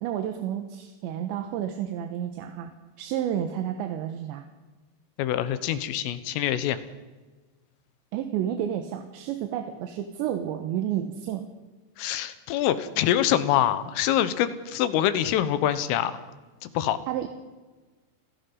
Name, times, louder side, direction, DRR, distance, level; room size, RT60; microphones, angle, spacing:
voice 1, 0.0-2.7 3.0-4.4 8.1-11.5 17.1-17.3, right 10 dB, 70° right, 6 dB, 3.2 m, -30 dB
voice 2, 5.2-6.8 12.0-16.1 16.6-17.0, left 11 dB, 85° left, 12 dB, 3.8 m, -25 dB
29.5 x 16.0 x 5.5 m, 1.2 s
omnidirectional pair, 5.8 m